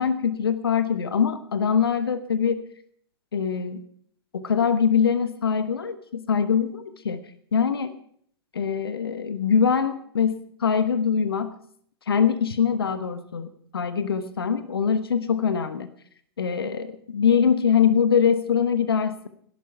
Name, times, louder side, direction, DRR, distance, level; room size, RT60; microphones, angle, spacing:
voice 1, 0.0-2.6 3.3-3.8 4.3-7.9 8.5-11.5 12.1-15.9 16.4-19.3, left 7 dB, 70° left, 12 dB, 1.1 m, -23 dB
16.5 x 11.0 x 5.7 m, 0.64 s
figure-of-eight pair, 100°, 13 cm